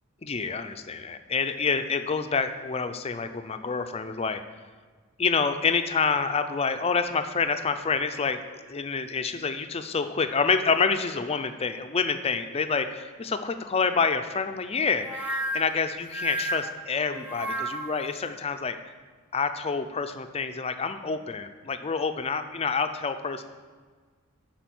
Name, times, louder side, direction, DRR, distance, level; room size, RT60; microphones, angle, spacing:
voice 1, 0.2-4.4 5.2-18.8 19.3-23.4, left 5 dB, 30° left, 9 dB, 0.5 m, -27 dB
sound 1, 15.0-18.1, right 1 dB, 5° right, 0.7 m, -32 dB
11.5 x 4.6 x 6.1 m, 1.5 s
head